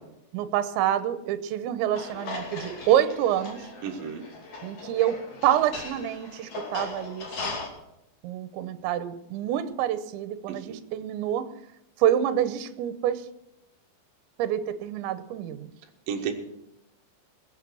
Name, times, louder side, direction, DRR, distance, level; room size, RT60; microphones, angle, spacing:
voice 1, 0.3-3.7 4.6-7.6 8.2-11.5 12.0-13.3 14.4-15.7, right 11 dB, 80° right, 11 dB, 3.1 m, -27 dB
sound 1, 1.9-7.7, left 3 dB, 45° left, 3.6 m, -38 dB
voice 2, 3.8-4.2 10.5-10.8 16.1-16.3, right 7 dB, 65° right, 2 dB, 2.7 m, -32 dB
20.5 x 8.1 x 6.2 m, 0.85 s
omnidirectional pair, 5.2 m